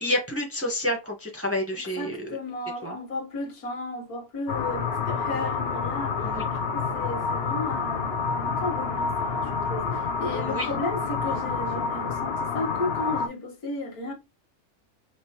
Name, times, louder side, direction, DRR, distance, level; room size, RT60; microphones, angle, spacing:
voice 1, 0.0-2.3 2.8-3.0 6.2-6.4 10.3-10.7, left 1 dB, 10° right, 0.9 m, -29 dB
voice 2, 1.7-14.1, left 2 dB, 80° left, 2.0 m, -34 dB
sound 1, 4.5-13.3, left 5 dB, 50° left, 0.9 m, -28 dB
5.5 x 3.0 x 2.9 m
omnidirectional pair, 1.6 m